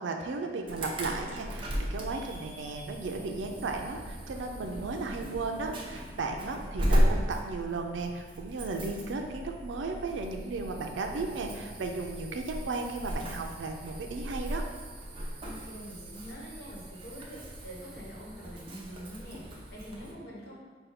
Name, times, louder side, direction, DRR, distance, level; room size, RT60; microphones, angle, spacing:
voice 1, 0.0-14.6, right 3 dB, 90° right, 3 dB, 0.4 m, -35 dB
Insect / Alarm, 0.7-20.1, equal, 30° right, 0.6 m, -35 dB
voice 2, 15.4-20.7, equal, 60° left, -4 dB, 1.1 m, -45 dB
5.2 x 2.3 x 4.2 m, 1.5 s
head